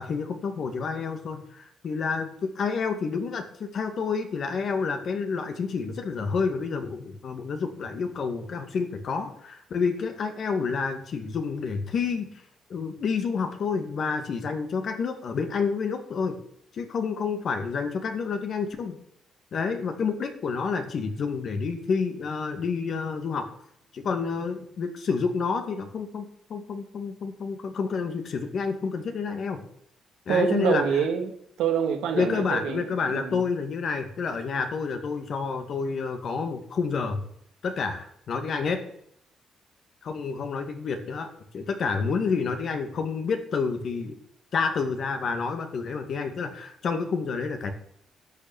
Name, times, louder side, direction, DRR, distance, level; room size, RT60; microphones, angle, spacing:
voice 1, 0.0-12.3 12.7-16.4 16.7-19.0 19.5-23.5 23.9-29.6 30.3-30.8 32.1-37.2 37.6-38.8 40.0-44.2 44.5-47.7, left 5 dB, 60° left, 6 dB, 2.0 m, -29 dB
voice 2, 30.3-31.3 31.6-33.4, right 7 dB, 85° right, 3 dB, 2.2 m, -26 dB
11.5 x 6.9 x 7.2 m, 0.70 s
cardioid pair, 90°, 0 cm